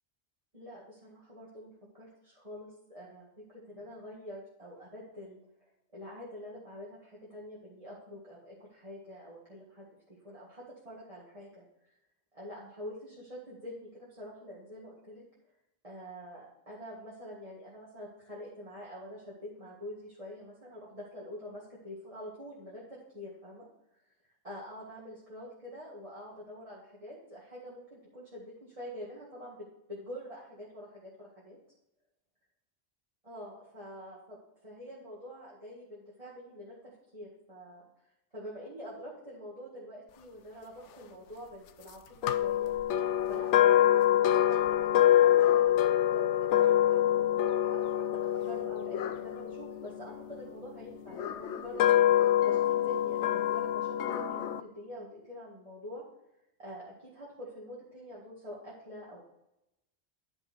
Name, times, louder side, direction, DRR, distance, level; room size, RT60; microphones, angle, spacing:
voice 1, 0.5-11.6 12.3-15.2 15.8-23.7 24.4-31.6 33.2-37.8 38.3-42.7 43.3-51.9 52.4-56.0 56.6-59.2, equal, 30° right, -7 dB, 2.0 m, -46 dB
sound 1, 42.2-50.4 51.1-54.6, left 12 dB, 85° left, 0.9 m, -25 dB
11.5 x 5.6 x 4.5 m, 0.86 s
omnidirectional pair, 1.2 m